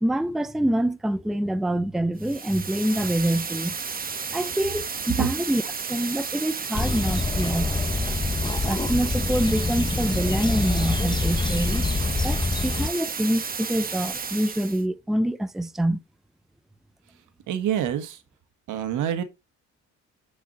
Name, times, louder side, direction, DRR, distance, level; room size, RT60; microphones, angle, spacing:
voice 1, 0.0-3.8 4.3-5.6 5.9-7.7 8.7-11.9 12.2-16.0, right 1 dB, ahead, 0.5 m, -26 dB
sound 1, 2.2-14.8, right 5 dB, 30° right, 1.1 m, -32 dB
sound 2, 6.7-12.9, left 3 dB, 15° left, 1.0 m, -26 dB
voice 2, 17.5-18.2 18.7-19.2, right 9 dB, 80° right, 1.6 m, -26 dB
9.1 x 5.0 x 4.0 m
cardioid pair, 90°, 30 cm